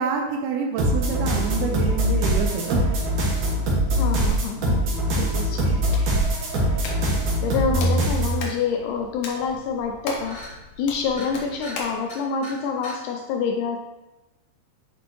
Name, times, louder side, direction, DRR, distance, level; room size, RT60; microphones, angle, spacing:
voice 1, 0.0-2.8 4.6-4.7, right 5 dB, 80° right, 2 dB, 2.0 m, -27 dB
sound 1, 0.8-8.4, right 1 dB, 65° right, 2.6 m, -22 dB
voice 2, 4.0-4.9 5.2-5.8 7.4-10.4 10.8-13.8, left 6 dB, 80° left, 2 dB, 1.9 m, -27 dB
Hands, 5.5-12.0, left 3 dB, 65° left, 1.8 m, -38 dB
sound 2, 8.9-9.0 9.3-9.4 9.7-9.9 10.2-10.5 11.1-11.3 11.6-11.8 12.1-12.6 12.8-13.0, left 1 dB, 35° left, 1.3 m, -39 dB
8.1 x 4.3 x 3.0 m, 1.0 s
omnidirectional pair, 4.0 m